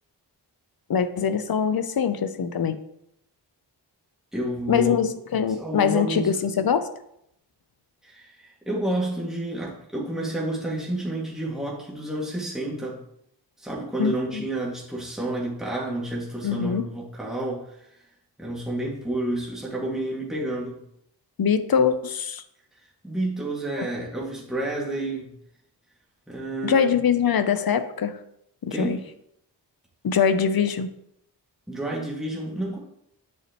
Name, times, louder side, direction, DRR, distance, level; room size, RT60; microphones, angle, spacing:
voice 1, 0.9-2.8 4.7-6.9 14.0-14.5 16.4-16.9 21.4-22.4 26.6-28.2 28.6-29.0 30.0-30.9, left 7 dB, 55° left, 12 dB, 0.7 m, -23 dB
voice 2, 4.3-5.0 5.6-6.3 8.0-13.0 13.6-17.9 18.4-20.8 23.0-25.3 26.3-27.0 28.7-29.0 31.7-32.8, right 1 dB, ahead, -4 dB, 2.1 m, -30 dB
8.1 x 6.1 x 3.0 m, 0.75 s
wide cardioid pair, 75°, 42 cm